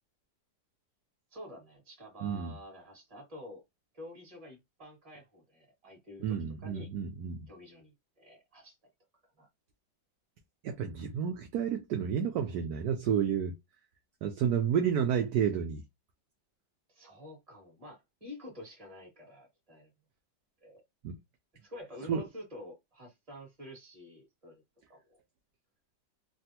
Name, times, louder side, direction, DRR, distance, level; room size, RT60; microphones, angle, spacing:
voice 1, 1.3-3.6 3.9-6.9 7.5-8.8 9.2-9.5 16.9-19.9 20.6-20.8 21.6-24.6 24.9-25.2, left 1 dB, 20° right, 1.6 m, -49 dB
voice 2, 2.2-2.5 6.2-7.5 10.6-13.5 14.2-15.8 21.0-21.1 22.1-22.2, right 8 dB, 75° right, 0.9 m, -30 dB
3.3 x 2.4 x 2.8 m
omnidirectional pair, 2.0 m